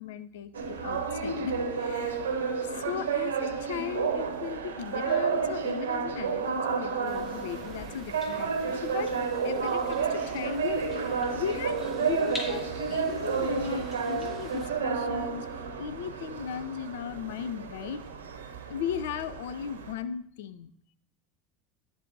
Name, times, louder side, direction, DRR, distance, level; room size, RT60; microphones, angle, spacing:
voice 1, 0.0-2.2 2.7-9.1 9.4-18.0 18.7-20.7, left 8 dB, 65° left, 13 dB, 0.4 m, -37 dB
sound 1, 0.5-19.9, right 5 dB, 75° right, 0.8 m, -31 dB
sound 2, 7.1-14.7, left 1 dB, 20° left, 2.4 m, -45 dB
10.5 x 4.7 x 2.6 m, 0.65 s
figure-of-eight pair, 75°, 0 cm